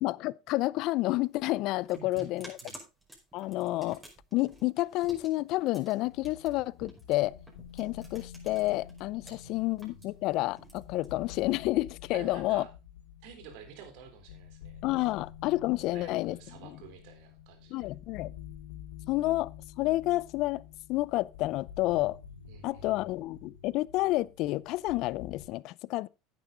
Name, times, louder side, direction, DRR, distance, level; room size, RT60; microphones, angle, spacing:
voice 1, 0.0-2.6 3.3-4.0 4.3-7.3 7.8-12.6 14.8-16.4 16.6-16.7 17.7-18.3 19.1-19.5 19.8-20.6 20.9-22.2 22.6-26.1, left 18 dB, 60° left, 0.5 m, -30 dB
sound 1, 1.1-9.3 9.6-11.6, right 1 dB, 10° right, 5.0 m, -51 dB
voice 2, 1.9-2.8 9.2-10.0 12.1-12.7 13.2-15.2 15.8-17.9 22.5-22.9, right 7 dB, 70° right, 3.6 m, -50 dB
sound 2, 6.1-25.5, left 9 dB, 90° left, 2.2 m, -49 dB
10.5 x 9.3 x 3.8 m
supercardioid pair, 105°, 0 cm